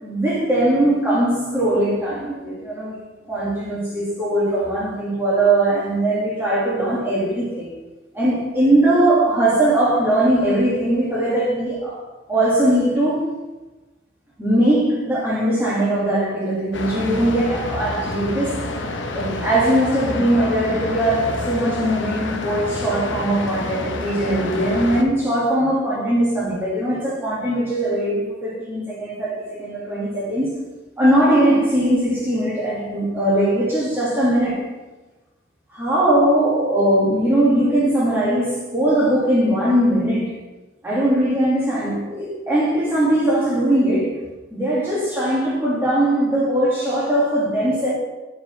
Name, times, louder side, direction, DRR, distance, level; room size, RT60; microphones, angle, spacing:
voice 1, 0.0-7.8 8.1-12.0 12.3-13.3 14.4-18.7 19.1-30.7 31.0-34.7 35.7-40.4 40.8-44.2 44.5-47.9, right 1 dB, 10° right, 1.8 m, -20 dB
sound 1, 16.7-25.0, left 2 dB, 70° left, 0.7 m, -28 dB
9.6 x 4.9 x 3.2 m
head